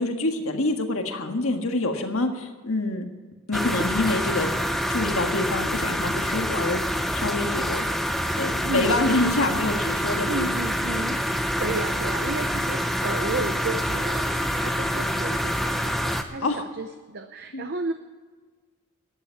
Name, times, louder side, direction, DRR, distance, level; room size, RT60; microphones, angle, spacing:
voice 1, 0.0-3.0 3.5-4.5 4.9-7.8 8.4-10.5 10.9-11.2 16.4-16.6 17.5-17.6, left 2 dB, 65° left, 5 dB, 1.7 m, -26 dB
sound 1, 3.5-16.2, equal, ahead, 0.7 m, -26 dB
voice 2, 10.3-17.9, right 2 dB, 45° right, 7 dB, 0.7 m, -33 dB
13.5 x 10.5 x 5.8 m, 1.4 s
head